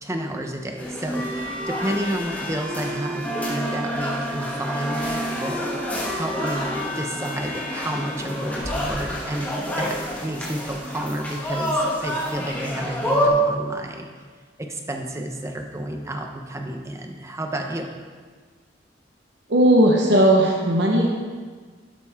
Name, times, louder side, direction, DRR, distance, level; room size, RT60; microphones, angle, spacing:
voice 1, 0.0-14.1 14.6-17.9, right 1 dB, 15° right, 3 dB, 1.0 m, -31 dB
sound 1, 0.8-13.3, equal, 10° left, 1.8 m, -28 dB
voice 2, 19.5-21.1, right 1 dB, 65° right, 0 dB, 1.3 m, -17 dB
12.0 x 11.5 x 3.7 m, 1.5 s
head